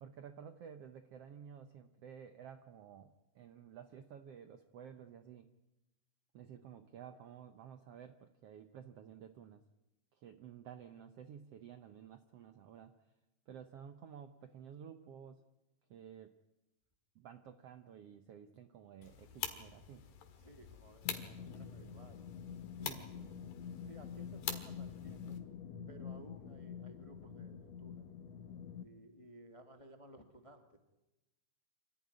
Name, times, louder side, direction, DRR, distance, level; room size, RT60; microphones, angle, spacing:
voice 1, 0.0-5.5 6.3-9.6 10.1-12.9 13.5-15.4 15.9-16.3 17.1-20.0 22.8-23.3, right 8 dB, 75° right, 9 dB, 1.4 m, -53 dB
sound 1, 19.0-25.4, left 9 dB, 85° left, 3.5 m, -46 dB
voice 2, 20.3-22.3 22.7-23.0 23.8-25.4 25.9-28.1 28.8-30.8, equal, 25° left, 5 dB, 0.7 m, -58 dB
sound 2, 21.0-28.8, left 7 dB, 60° left, 2.0 m, -47 dB
26.0 x 14.5 x 9.6 m, 1.0 s
omnidirectional pair, 3.9 m